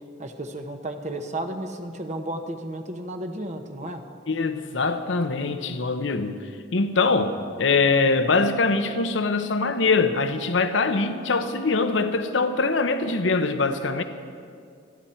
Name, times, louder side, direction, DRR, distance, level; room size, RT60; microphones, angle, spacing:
voice 1, 0.2-4.0, right 1 dB, 40° right, 1.0 m, -33 dB
voice 2, 4.3-6.4 6.7-14.0, left 3 dB, 75° left, 0.9 m, -23 dB
27.5 x 10.5 x 4.4 m
head